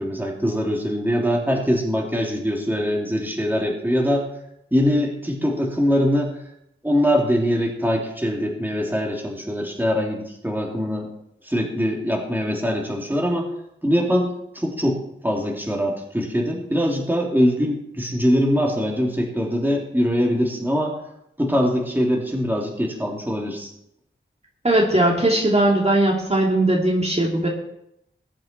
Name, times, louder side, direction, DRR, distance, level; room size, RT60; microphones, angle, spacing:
voice 1, 0.0-4.3 4.7-6.4 6.8-11.1 11.4-13.5 13.8-21.0 21.4-23.7, equal, 10° right, -1 dB, 3.1 m, -22 dB
voice 2, 24.6-27.5, right 1 dB, 30° right, -2 dB, 2.6 m, -19 dB
20.5 x 7.7 x 4.5 m, 0.79 s
wide cardioid pair, 65°, 20 cm